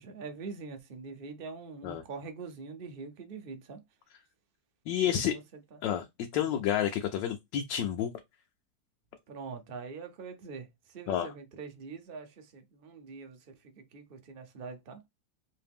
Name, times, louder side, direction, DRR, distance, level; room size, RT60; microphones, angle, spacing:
voice 1, 0.0-3.8 5.0-5.4 5.7-5.8 6.4-6.5 9.3-15.0, right 4 dB, 70° right, 0.5 m, -44 dB
voice 2, 4.9-5.4 5.8-6.1 6.3-8.1 11.1-11.3, left 10 dB, 85° left, 1.3 m, -29 dB
3.3 x 2.8 x 3.4 m
omnidirectional pair, 1.9 m